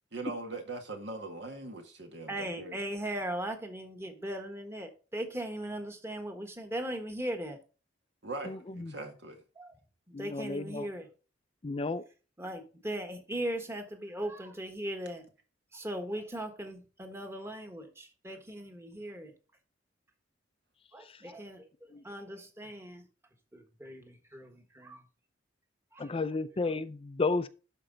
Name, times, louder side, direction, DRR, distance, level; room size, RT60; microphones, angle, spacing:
voice 1, 0.1-2.8 8.2-9.4, right 2 dB, 70° right, 1.8 m, -41 dB
voice 2, 2.3-7.6 9.5-9.8 10.1-11.1 12.4-15.2 15.7-19.3 20.9-23.0 23.5-25.0 25.9-26.1 26.6-26.7, right 1 dB, 15° right, 1.4 m, -38 dB
voice 3, 8.5-8.9 10.1-10.9 11.6-12.0 21.9-22.0 26.0-27.5, left 3 dB, 30° left, 0.4 m, -32 dB
11.5 x 4.5 x 3.9 m
head